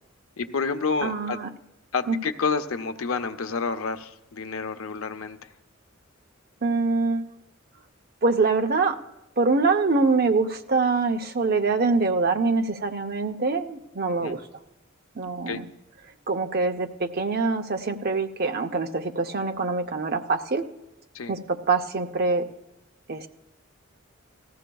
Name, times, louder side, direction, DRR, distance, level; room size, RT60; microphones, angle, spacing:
voice 1, 0.4-1.4 1.9-5.5 14.2-14.4 15.5-15.6 21.1-21.3, left 5 dB, 85° left, 8 dB, 0.6 m, -29 dB
voice 2, 1.0-1.5 2.1-2.2 6.6-7.3 8.2-9.0 9.4-14.4 15.2-15.7 16.3-20.6 21.3-22.5 23.1-23.3, right 3 dB, 45° right, 6 dB, 0.7 m, -24 dB
18.0 x 14.0 x 2.3 m, 0.93 s
head